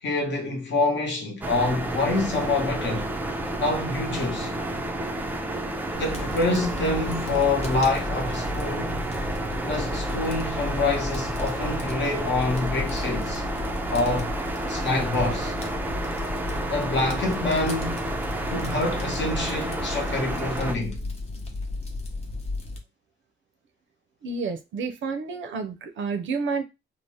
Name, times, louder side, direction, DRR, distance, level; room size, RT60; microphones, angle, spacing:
voice 1, 0.0-3.1 3.6-4.5 6.0-9.0 9.6-13.4 13.9-14.3 14.7-15.5 16.7-18.1 18.5-21.0, left 2 dB, 60° left, 1.0 m, -26 dB
sound 1, 1.4-20.8, right 1 dB, 10° right, 0.3 m, -31 dB
Fire, 5.9-22.8, left 2 dB, 30° left, 0.6 m, -35 dB
voice 2, 24.2-26.6, right 4 dB, 65° right, 0.5 m, -30 dB
2.7 x 2.0 x 3.3 m
cardioid pair, 140°, 21 cm